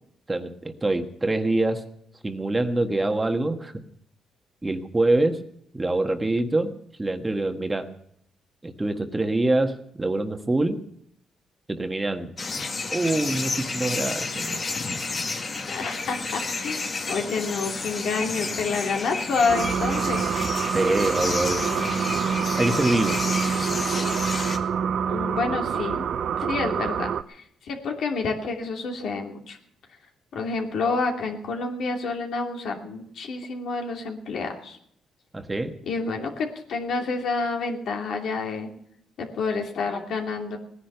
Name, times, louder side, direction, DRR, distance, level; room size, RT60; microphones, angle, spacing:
voice 1, 0.3-1.8 2.2-3.7 4.6-5.4 5.7-6.7 7.0-7.9 8.6-10.8 11.7-12.3 12.9-14.8 20.7-21.6 22.6-23.2 35.3-35.8, right 2 dB, 20° right, 6 dB, 1.4 m, -25 dB
sound 1, 12.4-24.6, left 3 dB, 40° left, 1.9 m, -31 dB
voice 2, 15.7-20.2 25.1-26.1 26.4-29.6 30.3-34.8 35.9-38.7 39.2-40.6, left 4 dB, 70° left, 2 dB, 2.7 m, -28 dB
sound 2, 19.5-27.2, right 7 dB, 65° right, 0.6 m, -26 dB
18.0 x 10.5 x 6.8 m, 0.70 s
cardioid pair, 90°, 0 cm